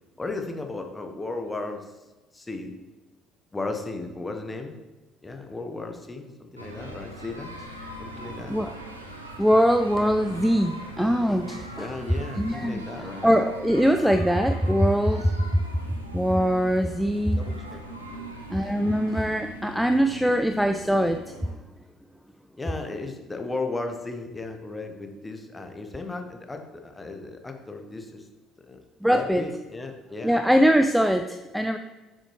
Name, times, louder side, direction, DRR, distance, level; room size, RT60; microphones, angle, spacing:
voice 1, 0.2-2.0 2.3-2.7 3.5-4.7 5.2-7.6 8.0-8.6 11.8-13.3 17.3-17.8 18.1-18.3 22.6-28.3 28.7-28.8 29.1-30.7, left 3 dB, 15° left, 5 dB, 1.1 m, -35 dB
sound 1, 6.6-21.5, right 1 dB, 85° right, 0.7 m, -41 dB
voice 2, 9.4-11.9 12.4-12.8 13.2-15.6 16.1-17.4 18.5-21.5 29.0-29.4 30.2-31.8, equal, ahead, 7 dB, 0.4 m, -22 dB
8.1 x 6.5 x 3.2 m, 1.1 s
figure-of-eight pair, 50°, 0 cm